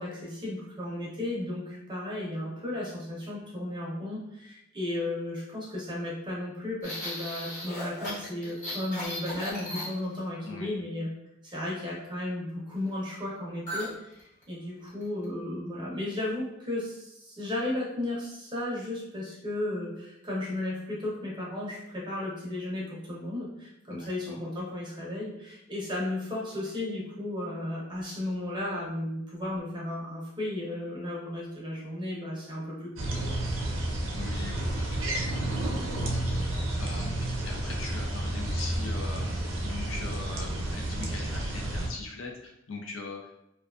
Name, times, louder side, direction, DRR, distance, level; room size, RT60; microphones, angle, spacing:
voice 1, 0.0-11.1 11.4-33.2, left 1 dB, 25° right, -5 dB, 0.6 m, -34 dB
sound 1, 6.8-10.3 13.7-13.9 14.2-14.4 14.9-15.2, left 1 dB, 40° left, 1.1 m, -36 dB
voice 2, 10.4-10.8 23.9-24.4 34.1-35.0 35.2-43.4, left 3 dB, 90° left, 1 dB, 0.5 m, -42 dB
sound 2, 33.0-41.9, right 1 dB, 85° right, 0.5 m, -31 dB
2.5 x 2.3 x 2.3 m, 0.83 s
head